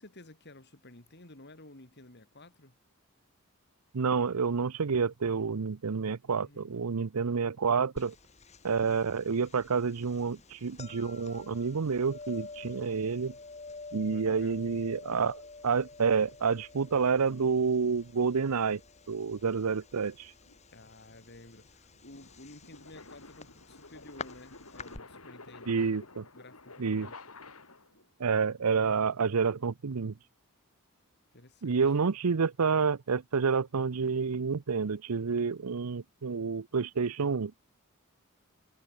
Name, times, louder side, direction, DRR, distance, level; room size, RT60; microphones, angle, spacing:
voice 1, 0.0-2.7 6.3-6.9 14.1-14.6 20.7-25.7 26.3-27.3 31.3-31.8, left 2 dB, 50° left, 3.4 m, -53 dB
voice 2, 3.9-8.1 8.6-13.3 13.9-18.8 19.1-20.3 25.7-26.3 26.8-27.1 28.2-30.2 31.6-37.5, right 5 dB, 90° right, 0.7 m, -29 dB
sound 1, 8.0-25.0, left 3 dB, 30° left, 2.2 m, -49 dB
sound 2, 20.5-28.1, left 3 dB, 70° left, 7.7 m, -51 dB
head